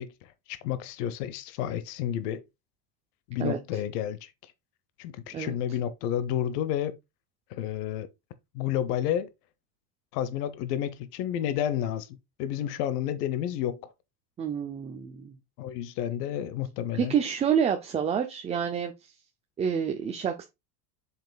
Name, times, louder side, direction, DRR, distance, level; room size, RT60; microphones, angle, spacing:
voice 1, 0.0-2.4 3.3-4.5 5.0-7.0 7.5-8.1 8.5-9.3 10.1-13.9 15.6-17.2, left 10 dB, 70° left, 1.1 m, -31 dB
voice 2, 3.4-3.8 5.3-5.5 14.4-15.4 17.0-19.1 19.6-20.4, right 7 dB, 15° right, 0.4 m, -28 dB
7.2 x 5.8 x 2.3 m
supercardioid pair, 140°, 49 cm